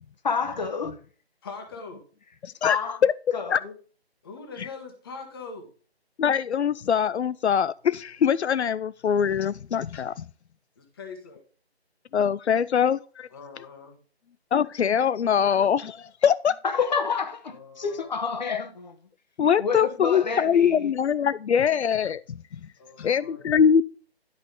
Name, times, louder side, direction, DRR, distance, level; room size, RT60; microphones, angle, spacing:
voice 1, 0.2-0.9 2.6-3.0 3.3-3.7 16.7-18.9 19.6-20.9, left 5 dB, 40° left, 1.1 m, -29 dB
voice 2, 1.4-2.0 4.2-5.7 10.8-11.4 13.3-14.0 17.5-18.1 22.8-23.5, left 4 dB, 20° left, 1.3 m, -42 dB
voice 3, 2.4-2.8 3.0-3.1 3.5-3.6 4.6-4.7 6.2-10.3 12.1-13.3 14.5-16.6 19.4-22.6 23.0-23.8, left 7 dB, 85° left, 0.5 m, -23 dB
11.0 x 5.1 x 3.7 m
figure-of-eight pair, 160°, 32 cm